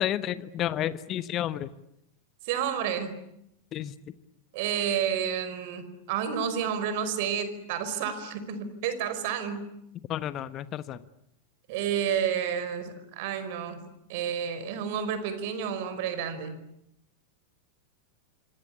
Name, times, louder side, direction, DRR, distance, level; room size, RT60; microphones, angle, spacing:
voice 1, 0.0-1.7 3.7-3.9 10.1-11.1, left 11 dB, 35° left, 15 dB, 1.2 m, -31 dB
voice 2, 2.4-3.1 4.5-9.6 11.7-13.8 14.1-16.6, right 8 dB, 50° right, 12 dB, 5.1 m, -30 dB
27.0 x 26.0 x 8.6 m, 0.80 s
figure-of-eight pair, 90°, 0 cm